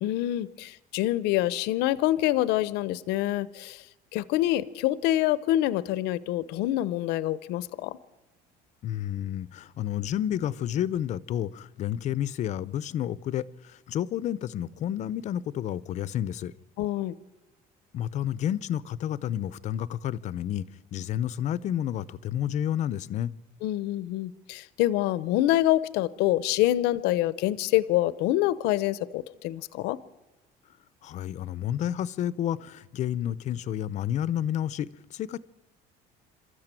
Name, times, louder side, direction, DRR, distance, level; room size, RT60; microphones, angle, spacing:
voice 1, 0.0-3.8 4.1-8.0 16.8-17.2 23.6-30.0, left 14 dB, 80° left, 17 dB, 0.7 m, -26 dB
voice 2, 8.8-16.5 17.9-20.7 20.9-23.3 31.0-35.4, left 11 dB, 45° left, 19 dB, 0.6 m, -30 dB
27.0 x 13.5 x 9.0 m, 1.1 s
cardioid pair, 160°, 17 cm